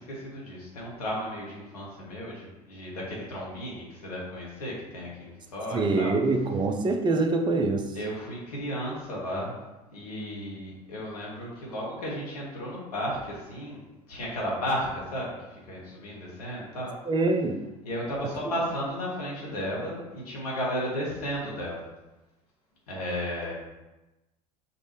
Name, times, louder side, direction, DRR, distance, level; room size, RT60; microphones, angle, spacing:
voice 1, 0.1-6.1 7.9-9.5 9.9-13.8 14.1-16.9 17.8-21.8 22.9-23.5, equal, 70° left, -4 dB, 1.5 m, -34 dB
voice 2, 5.7-8.0 17.0-17.6 18.4-18.5, right 3 dB, 25° right, 5 dB, 0.6 m, -25 dB
5.3 x 2.6 x 3.2 m, 1.0 s
figure-of-eight pair, 70°, 20 cm